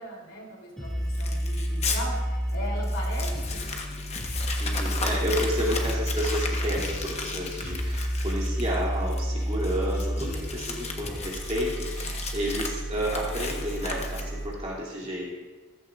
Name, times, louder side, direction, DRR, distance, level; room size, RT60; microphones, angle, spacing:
voice 1, 0.0-4.1 4.6-4.8 12.0-12.2, equal, 65° left, -2 dB, 3.3 m, -39 dB
sound 1, 0.8-14.5, equal, ahead, 2.3 m, -30 dB
Crumpling crinkling, 1.1-2.0 2.5-2.6 2.8-14.5, left 4 dB, 30° left, 1.1 m, -36 dB
voice 2, 4.6-15.3, equal, 30° right, -5 dB, 2.9 m, -31 dB
15.0 x 14.0 x 2.5 m, 1.3 s
head